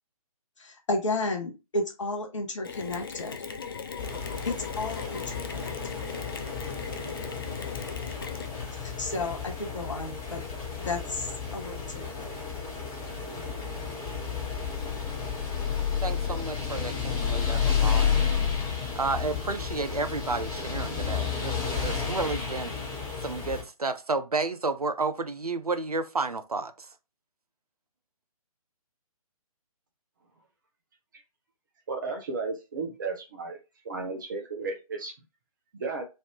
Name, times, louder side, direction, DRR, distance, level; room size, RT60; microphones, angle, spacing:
voice 1, 0.6-3.4 4.4-5.7 8.7-10.4 10.8-12.3, left 2 dB, 55° left, 0.8 m, -33 dB
Mechanisms, 2.6-8.9, left 6 dB, 40° left, 0.4 m, -39 dB
sound 1, 4.0-23.6, left 6 dB, 15° left, 1.2 m, -31 dB
voice 2, 16.0-18.3 18.9-22.7 23.2-26.9, right 3 dB, 80° right, 0.6 m, -31 dB
voice 3, 31.9-33.6 33.8-35.1 35.7-36.0, right 4 dB, 35° right, 0.7 m, -34 dB
3.1 x 2.6 x 2.8 m
figure-of-eight pair, 135°, 19 cm